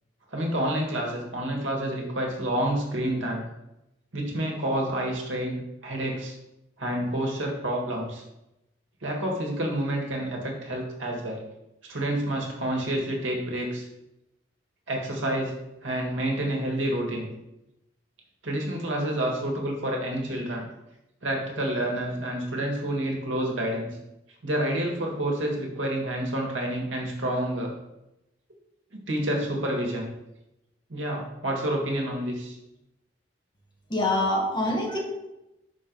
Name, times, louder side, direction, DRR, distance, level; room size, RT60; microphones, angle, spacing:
voice 1, 0.3-3.5 4.1-6.3 6.8-8.2 9.0-11.4 11.8-13.9 14.9-15.5 15.8-17.3 18.4-20.7 21.2-23.9 24.4-27.7 28.9-30.1 30.9-32.6, right 1 dB, 90° right, 0 dB, 1.8 m, -29 dB
voice 2, 33.9-35.0, left 1 dB, 25° left, -2 dB, 1.6 m, -25 dB
6.2 x 4.6 x 5.3 m, 0.91 s
head